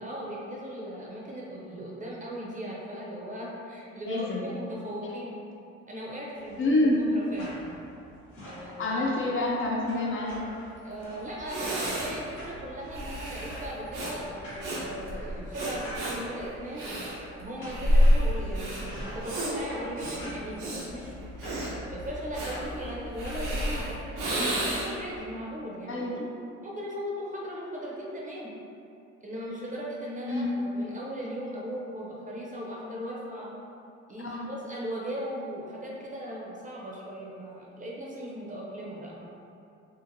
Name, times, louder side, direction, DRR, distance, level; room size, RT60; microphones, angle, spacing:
voice 1, 0.0-5.4 5.9-6.8 7.1-7.6 8.4-9.0 10.8-16.8 17.4-21.6 21.9-26.3 26.6-28.5 29.2-33.5 34.1-39.2, equal, 25° right, -4 dB, 0.6 m, -38 dB
voice 2, 4.0-4.4 6.6-7.1 8.8-10.4 24.3-24.7 25.9-26.2 30.3-30.5 34.2-34.5, left 2 dB, 45° left, -2 dB, 0.5 m, -27 dB
sound 1, 6.4-23.4, equal, 85° left, 1.1 m, -47 dB
Breathing, 11.0-11.1 11.4-25.1, equal, 85° right, 0.7 m, -29 dB
2.8 x 2.5 x 2.6 m, 2.6 s
cardioid pair, 90°, 30 cm